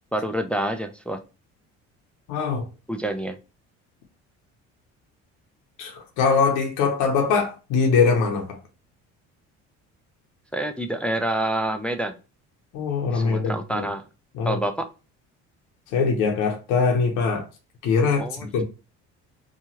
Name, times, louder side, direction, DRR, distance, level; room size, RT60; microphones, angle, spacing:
voice 1, 0.1-1.2 2.9-3.4 10.5-12.2 13.1-14.0 14.4-14.8 18.2-18.5, right 1 dB, 5° left, 0.3 m, -27 dB
voice 2, 2.3-2.7 5.8-8.6 12.7-13.9 14.3-14.6 15.9-17.5 17.8-18.6, left 5 dB, 80° left, 0.7 m, -22 dB
2.9 x 2.3 x 2.8 m
supercardioid pair, 90°, 31 cm